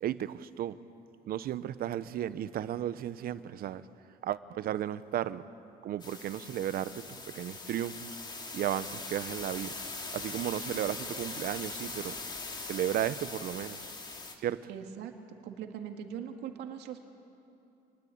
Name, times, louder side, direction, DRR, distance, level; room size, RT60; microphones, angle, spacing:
voice 1, 0.0-0.8 1.2-3.8 4.2-5.4 5.8-8.1 8.5-9.7 10.1-12.2 12.7-13.9 14.4-14.6, right 11 dB, 60° right, 14 dB, 0.9 m, -34 dB
sound 1, 6.0-14.3, left 3 dB, 25° left, 2.5 m, -41 dB
voice 2, 14.7-15.1 15.4-17.0, right 8 dB, 85° right, 4 dB, 2.2 m, -41 dB
28.0 x 20.0 x 8.6 m, 2.8 s
cardioid pair, 110°, 17 cm